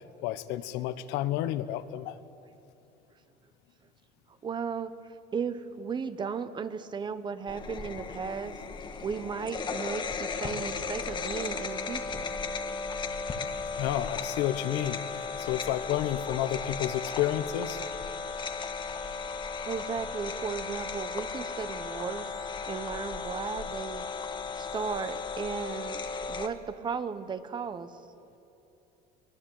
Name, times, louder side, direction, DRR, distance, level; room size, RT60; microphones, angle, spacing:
voice 1, 0.2-2.2 13.8-15.0 15.4-17.8, left 12 dB, 75° left, 13 dB, 1.2 m, -30 dB
voice 2, 4.4-4.9 5.3-8.5 9.0-10.1 10.4-12.3 19.7-22.3 22.7-24.0 24.6-26.0 26.3-27.9, right 6 dB, 25° right, 12 dB, 1.1 m, -35 dB
sound 1, 7.5-26.5, left 5 dB, 25° left, 1.5 m, -36 dB
23.5 x 19.0 x 9.1 m, 2.8 s
cardioid pair, 140°, 18 cm